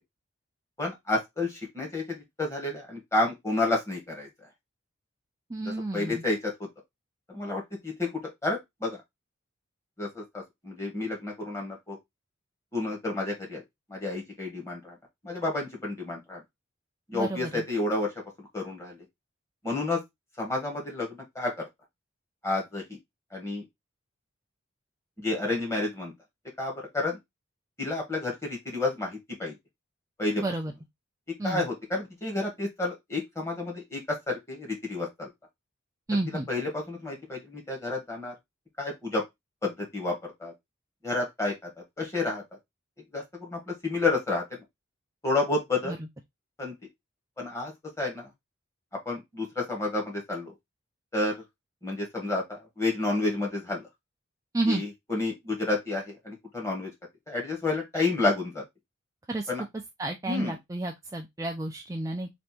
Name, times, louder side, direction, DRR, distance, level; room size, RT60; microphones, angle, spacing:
voice 1, 0.8-2.0 2.4-4.3 5.6-6.5 7.3-9.0 10.0-12.0 12.7-13.6 13.9-14.9 15.2-16.4 17.1-18.1 18.5-19.0 19.6-20.0 20.4-21.6 22.4-22.8 23.3-23.6 25.2-26.1 26.6-27.2 27.8-29.5 30.2-30.4 31.4-35.3 36.5-38.3 38.8-39.2 39.6-40.5 41.0-41.5 42.0-42.4 43.1-44.6 45.2-46.0 46.6-46.7 47.4-47.7 48.0-48.3 49.0-50.5 51.1-51.3 51.8-52.4 52.8-53.8 54.7-56.9 57.3-58.6 59.5-59.6 60.3-60.5, left 2 dB, 15° left, 1.5 m, -30 dB
voice 2, 5.5-6.2 17.1-17.6 30.4-30.7 31.4-31.7 36.1-36.5 45.8-46.0 54.5-54.8 59.3-59.5 60.0-62.3, right 2 dB, 15° right, 0.3 m, -31 dB
3.4 x 2.6 x 4.2 m
head